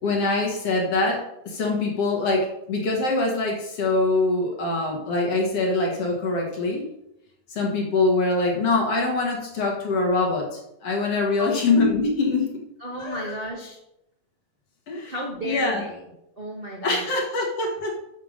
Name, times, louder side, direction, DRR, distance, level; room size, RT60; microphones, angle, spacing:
voice 1, 0.0-6.8 7.5-12.5 13.0-13.3 14.9-15.1 15.4-15.8 16.8-18.0, left 3 dB, 50° left, 0 dB, 2.3 m, -24 dB
voice 2, 11.3-11.7 12.8-13.8 15.1-16.0 16.4-17.0, equal, 50° right, -3 dB, 0.6 m, -33 dB
7.4 x 6.8 x 6.4 m, 0.84 s
omnidirectional pair, 4.0 m